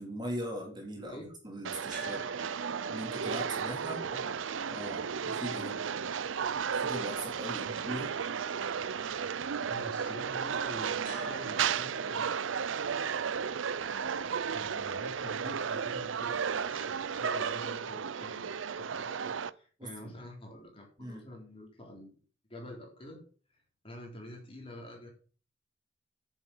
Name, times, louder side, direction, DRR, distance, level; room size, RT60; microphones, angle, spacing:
voice 1, 0.0-1.2 1.4-2.2 2.9-4.0 4.7-5.7 6.8-8.1 19.8-20.1 21.0-21.2, equal, 25° right, 0 dB, 3.5 m, -40 dB
voice 2, 1.0-1.3 4.0-4.4 5.5-5.8 7.6-8.1 9.6-12.5 14.5-16.4 16.7-22.2 22.5-23.2 23.8-25.1, left 1 dB, 30° left, 0 dB, 3.7 m, -47 dB
sound 1, 1.6-19.5, right 7 dB, 90° right, 0.5 m, -34 dB
sound 2, 1.9-18.0, right 3 dB, 45° right, 2.9 m, -50 dB
10.0 x 7.3 x 5.4 m, 0.40 s
head